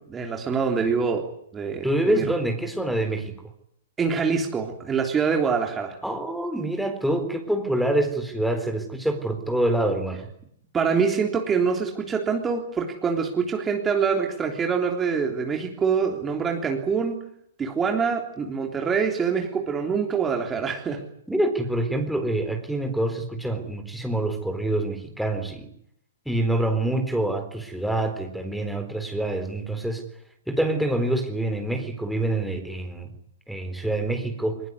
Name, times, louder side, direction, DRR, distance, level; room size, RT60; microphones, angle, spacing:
voice 1, 0.1-1.3 1.5-2.3 4.0-6.0 10.7-17.2 17.6-21.0, right 6 dB, 15° right, 2 dB, 3.4 m, -25 dB
voice 2, 1.8-3.4 6.0-10.3 21.3-25.7 26.3-30.0 30.5-33.1 33.5-34.6, right 1 dB, ahead, 5 dB, 4.0 m, -26 dB
22.5 x 21.0 x 9.8 m, 0.72 s
hypercardioid pair, 120°, 0 cm